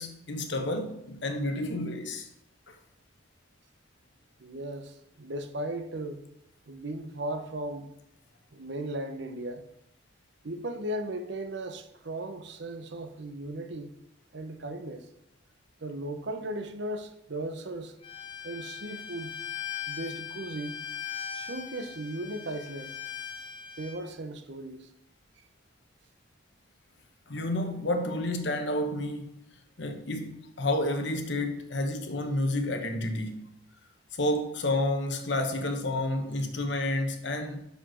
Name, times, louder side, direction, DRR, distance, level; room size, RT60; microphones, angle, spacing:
voice 1, 0.0-2.3 2.7-2.8 27.3-29.3 29.8-33.5 34.1-37.6, left 1 dB, 60° left, 1.0 m, -30 dB
voice 2, 4.4-6.2 6.7-7.9 8.5-9.6 10.4-13.9 14.3-15.1 15.8-17.9 18.4-19.3 19.9-20.8 21.3-22.9 23.8-24.9, right 1 dB, 60° right, 0.7 m, -36 dB
Bowed string instrument, 18.0-24.0, left 9 dB, 25° left, 0.8 m, -39 dB
6.1 x 5.2 x 6.1 m
head